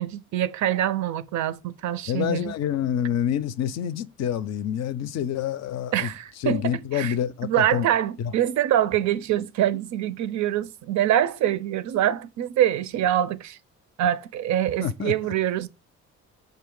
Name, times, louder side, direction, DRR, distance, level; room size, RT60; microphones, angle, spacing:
voice 1, 0.0-2.5 5.9-7.2 7.4-13.6 14.0-15.7, right 11 dB, 70° right, 0.5 m, -25 dB
voice 2, 2.1-6.1 6.4-7.9 8.2-8.3 14.8-15.1, left 9 dB, 60° left, 0.4 m, -27 dB
3.8 x 2.7 x 3.6 m
cardioid pair, 90°, 30 cm